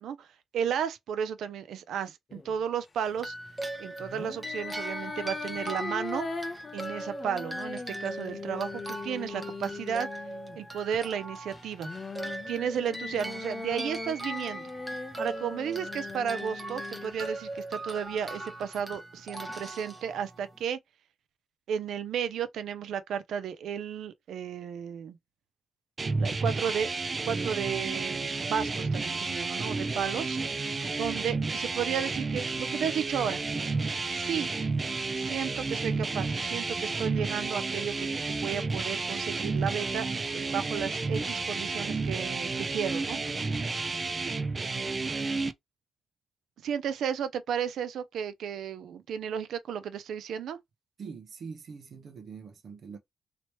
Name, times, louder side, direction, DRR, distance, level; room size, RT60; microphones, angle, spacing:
voice 1, 0.5-3.3 3.8-6.3 6.7-10.1 10.6-11.9 12.5-14.6 15.2-20.8 21.7-25.2 26.2-26.9 27.3-30.4 31.0-33.4 34.1-34.5 35.2-40.1 40.3-43.2 46.6-50.6, right 8 dB, 75° right, 0.5 m, -33 dB
sound 1, 2.3-2.6 4.0-10.6 11.5-17.1, left 4 dB, 25° left, 0.6 m, -40 dB
sound 2, 3.2-20.6, right 1 dB, 10° right, 0.9 m, -40 dB
sound 3, 26.0-45.5, right 3 dB, 25° right, 0.3 m, -31 dB
voice 2, 51.0-53.0, right 5 dB, 50° right, 0.8 m, -43 dB
3.0 x 2.9 x 3.0 m
cardioid pair, 145°, 0 cm